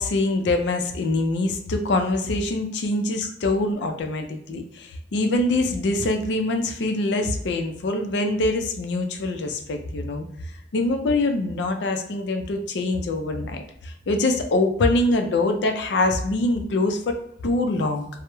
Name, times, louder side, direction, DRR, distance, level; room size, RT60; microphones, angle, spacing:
voice 1, 0.0-10.3 10.7-17.2 17.4-18.1, left 2 dB, 65° left, 5 dB, 0.4 m, -24 dB
2.2 x 2.0 x 3.0 m, 0.71 s
head